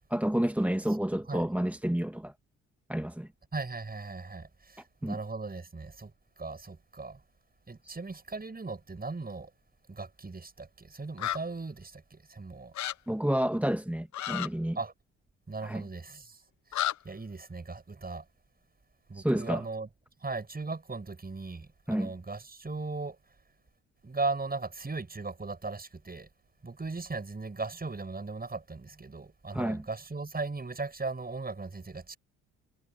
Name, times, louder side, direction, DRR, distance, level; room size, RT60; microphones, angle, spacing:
voice 1, 0.1-2.3 2.9-3.3 5.0-5.2 7.8-8.0 13.1-14.8 15.6-15.8 19.1-19.6 21.9-22.1 29.5-29.8, right 1 dB, 5° right, 2.0 m, -29 dB
voice 2, 3.5-6.1 6.4-7.2 7.7-9.5 9.9-12.7 14.7-14.9 15.5-16.4 16.7-18.2 19.1-19.9 20.2-23.2 24.0-26.3 26.6-32.2, right 3 dB, 25° right, 6.6 m, -38 dB
sound 1, 11.2-11.4 12.7-12.9 14.1-14.5 16.7-17.0, left 12 dB, 50° left, 1.0 m, -31 dB
figure-of-eight pair, 45°, 38 cm